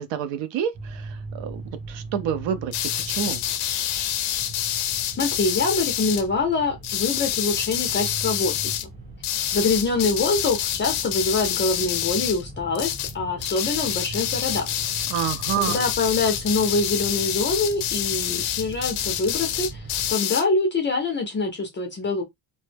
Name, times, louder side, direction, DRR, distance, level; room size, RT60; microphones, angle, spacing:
voice 1, 0.0-1.6 1.9-2.7 3.1-3.4 15.1-15.8, right 9 dB, 65° right, 0.6 m, -28 dB
sound 1, 0.7-20.1, right 2 dB, 15° right, 1.0 m, -40 dB
sound 2, 2.7-6.2 6.8-8.8 9.2-12.4 12.7-13.1 13.4-20.4, left 11 dB, 85° left, 0.6 m, -27 dB
voice 2, 5.2-8.6 9.5-14.7 15.6-22.2, left 3 dB, 25° left, 0.4 m, -25 dB
2.1 x 2.0 x 3.2 m
cardioid pair, 155°, 48 cm